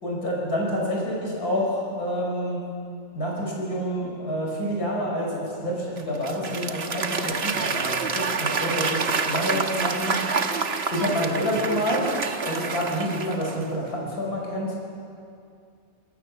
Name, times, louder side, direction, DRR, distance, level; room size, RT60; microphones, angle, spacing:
voice 1, 0.0-2.6 3.1-10.1 10.9-12.1 12.5-14.7, equal, 85° left, -2 dB, 6.0 m, -28 dB
Applause / Crowd, 6.0-13.8, right 4 dB, 45° right, 1.4 m, -28 dB
25.0 x 24.0 x 7.4 m, 2.4 s
omnidirectional pair, 1.6 m